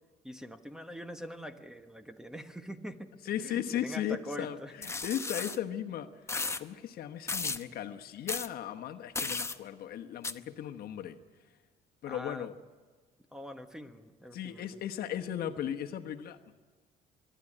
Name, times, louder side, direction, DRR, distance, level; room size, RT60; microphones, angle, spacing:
voice 1, 0.2-3.1 3.4-4.7 12.1-12.5 13.3-14.6, equal, 5° right, 8 dB, 1.2 m, -43 dB
voice 2, 3.2-6.1 6.6-11.2 12.0-12.5 14.3-16.5, left 10 dB, 65° left, 6 dB, 1.2 m, -36 dB
sound 1, 4.8-5.6 6.3-6.6 7.3-7.6 8.3-8.5 9.2-9.6 10.2-10.3, left 3 dB, 15° left, 0.8 m, -34 dB
24.0 x 11.5 x 9.9 m, 1.4 s
cardioid pair, 110°, 17 cm